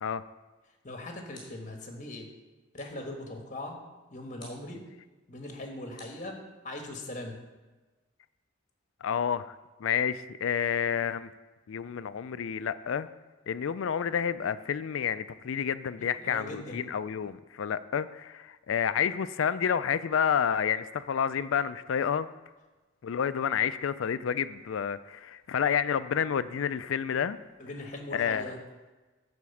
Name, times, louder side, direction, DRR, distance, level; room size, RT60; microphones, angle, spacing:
voice 1, 0.8-2.3 2.7-3.8 4.1-4.8 5.3-6.4 6.6-7.4 16.0-16.8 27.6-28.6, left 1 dB, 40° left, 3 dB, 1.4 m, -40 dB
sound 1, 1.3-1.8 2.7-3.1 4.4-4.7 6.0-6.8, left 1 dB, 20° left, 2.9 m, -54 dB
voice 2, 9.0-11.3 11.7-13.1 13.5-22.3 23.0-27.4 28.1-28.5, left 8 dB, 85° left, 14 dB, 0.4 m, -29 dB
11.0 x 4.3 x 7.1 m, 1.2 s
head